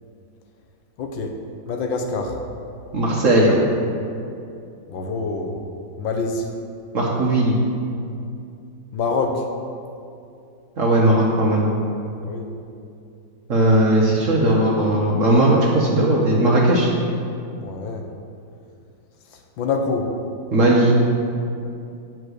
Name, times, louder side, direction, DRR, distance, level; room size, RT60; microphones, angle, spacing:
voice 1, 1.0-1.4 1.7-2.4 4.9-5.6 6.0-6.5 8.9-9.5 12.2-12.5 17.6-18.0 19.3-20.1, left 4 dB, 75° left, 3 dB, 1.5 m, -26 dB
voice 2, 2.9-3.6 6.9-7.6 10.8-11.7 13.5-16.9 20.5-21.0, right 1 dB, 50° right, -3 dB, 1.1 m, -17 dB
8.4 x 4.6 x 6.3 m, 2.5 s
omnidirectional pair, 2.1 m